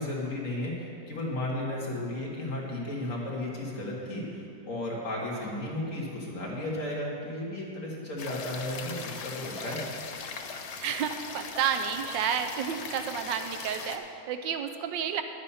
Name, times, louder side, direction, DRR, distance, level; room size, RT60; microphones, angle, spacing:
voice 1, 0.0-9.8, left 1 dB, 45° left, -4 dB, 2.0 m, -34 dB
voice 2, 5.3-5.7 10.8-15.2, right 8 dB, 80° right, 8 dB, 1.3 m, -31 dB
sound 1, 8.2-14.0, left 5 dB, 65° left, 0.7 m, -40 dB
10.5 x 8.5 x 5.6 m, 2.6 s
omnidirectional pair, 2.0 m